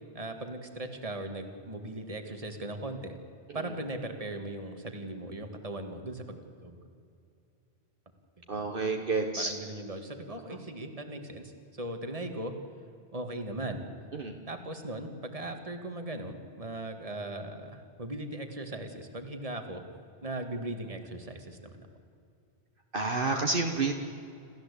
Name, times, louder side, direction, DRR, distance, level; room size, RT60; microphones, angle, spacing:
voice 1, 0.1-3.2 3.5-6.8 8.5-8.7 9.4-12.5 13.1-13.8 14.5-19.8 20.2-21.9, right 1 dB, 35° right, 6 dB, 2.1 m, -38 dB
voice 2, 8.5-9.5 14.2-14.3 22.9-23.9, right 3 dB, 55° right, 3 dB, 1.6 m, -29 dB
27.5 x 14.5 x 8.4 m, 2.5 s
omnidirectional pair, 1.1 m